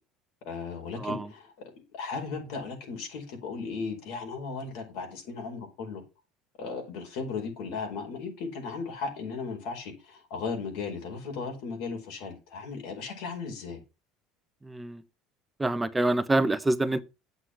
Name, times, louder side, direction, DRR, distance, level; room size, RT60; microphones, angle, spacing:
voice 1, 0.4-1.5 1.9-6.0 6.6-13.8, left 4 dB, 75° left, 5.0 m, -36 dB
voice 2, 14.7-15.0 15.6-17.0, right 2 dB, 10° right, 0.9 m, -26 dB
8.1 x 8.0 x 5.8 m
supercardioid pair, 110°, 0 cm